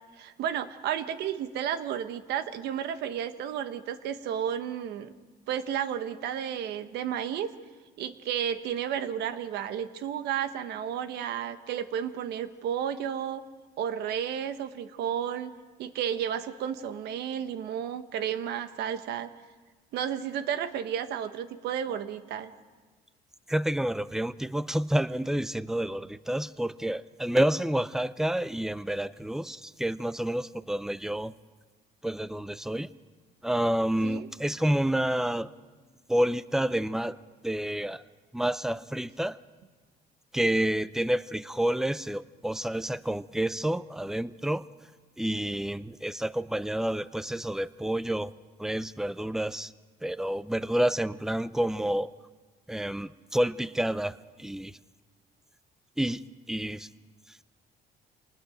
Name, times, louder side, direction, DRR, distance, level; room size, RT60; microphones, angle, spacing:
voice 1, 0.2-5.1 5.5-7.5 8.0-13.4 13.8-15.5 15.8-19.3 19.9-22.5 34.0-34.3, right 9 dB, 80° right, 11 dB, 1.1 m, -32 dB
voice 2, 23.5-31.3 32.0-32.9 33.4-35.5 36.1-37.2 37.4-38.0 38.3-39.4 40.3-44.6 45.2-48.3 48.6-49.7 50.0-52.1 52.7-54.7 56.0-56.9, right 1 dB, 5° right, 16 dB, 0.5 m, -29 dB
26.0 x 20.0 x 5.0 m, 1.4 s
cardioid pair, 110°, 17 cm